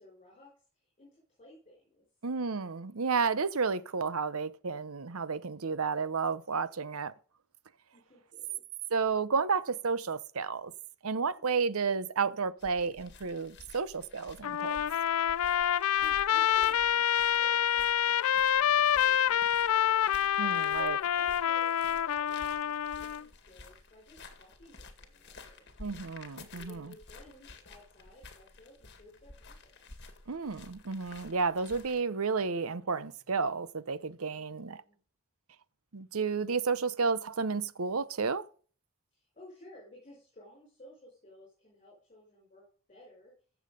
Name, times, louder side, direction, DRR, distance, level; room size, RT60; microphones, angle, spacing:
voice 1, 0.0-2.0 7.9-8.6 11.3-11.6 16.0-25.6 26.5-30.1 34.3-35.0 39.1-43.3, left 1 dB, 30° left, 5.4 m, -56 dB
voice 2, 2.2-7.1 8.9-10.7 11.0-14.8 20.4-21.0 25.8-26.9 30.3-34.8 35.9-38.5, right 5 dB, 80° right, 0.8 m, -32 dB
sound 1, 12.6-32.0, left 3 dB, 50° left, 2.0 m, -52 dB
Trumpet, 14.4-23.2, left 10 dB, 85° left, 0.4 m, -27 dB
15.0 x 7.2 x 5.2 m
head